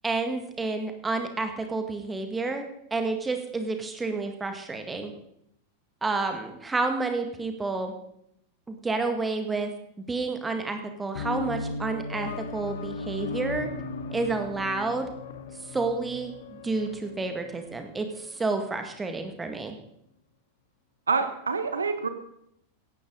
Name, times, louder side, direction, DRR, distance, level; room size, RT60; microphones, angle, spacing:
voice 1, 0.0-2.6 2.9-5.1 6.0-7.9 8.7-9.7 10.1-13.7 14.1-15.1 15.7-19.8, right 3 dB, 15° right, 6 dB, 2.0 m, -30 dB
sound 1, 11.1-18.5, left 3 dB, 60° left, 1.2 m, -37 dB
voice 2, 21.1-22.1, right 4 dB, 75° right, 10 dB, 1.1 m, -26 dB
17.0 x 11.5 x 4.0 m, 0.75 s
figure-of-eight pair, 90°, 0 cm